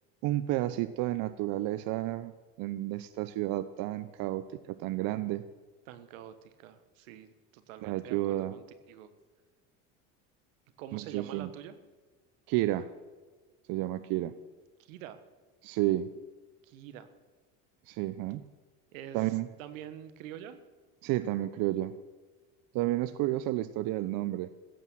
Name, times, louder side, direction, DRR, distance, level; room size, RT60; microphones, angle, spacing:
voice 1, 0.2-2.3 2.6-5.4 7.8-8.6 10.9-11.5 12.5-12.9 13.7-14.3 15.6-16.1 17.9-18.4 19.1-19.5 21.0-21.9 22.7-24.5, right 15 dB, 60° right, 14 dB, 0.7 m, -31 dB
voice 2, 5.9-9.1 10.8-11.7 14.8-15.2 16.6-17.1 18.9-20.6, right 10 dB, 85° right, 12 dB, 1.4 m, -46 dB
15.5 x 8.4 x 7.2 m, 1.3 s
supercardioid pair, 100°, 39 cm